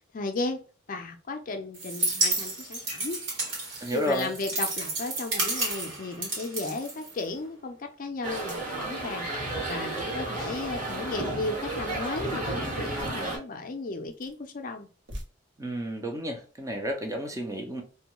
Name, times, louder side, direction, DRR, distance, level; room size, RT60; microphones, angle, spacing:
voice 1, 0.1-0.6 0.9-3.2 3.9-14.9, left 3 dB, 45° left, 0.4 m, -35 dB
sound 1, 1.7-7.5, right 2 dB, 85° right, 1.2 m, -31 dB
voice 2, 3.8-4.3 15.6-17.8, equal, 15° right, 0.4 m, -31 dB
sound 2, 5.7-6.1 6.6-6.7 8.2-8.8 12.9-13.2 13.9-14.4 14.9-15.2, equal, 65° right, 0.8 m, -45 dB
sound 3, 8.2-13.4, right 2 dB, 40° right, 1.1 m, -32 dB
2.6 x 2.2 x 2.9 m
head